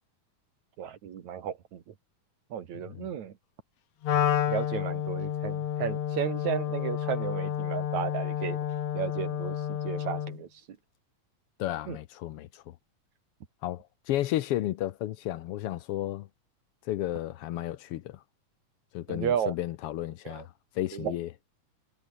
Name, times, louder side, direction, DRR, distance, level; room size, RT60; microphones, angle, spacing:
voice 1, 0.8-1.9 2.5-3.3 4.1-8.6 8.9-10.5 11.9-12.0 19.1-19.5 20.2-20.5 20.9-21.1, right 9 dB, 65° right, 3.0 m, -33 dB
voice 2, 2.7-3.1 11.6-12.8 13.6-16.3 16.8-18.2 18.9-21.3, left 14 dB, 80° left, 1.3 m, -33 dB
Wind instrument woodwind instrument, 4.0-10.4, left 10 dB, 60° left, 2.6 m, -30 dB
omnidirectional pair, 3.6 m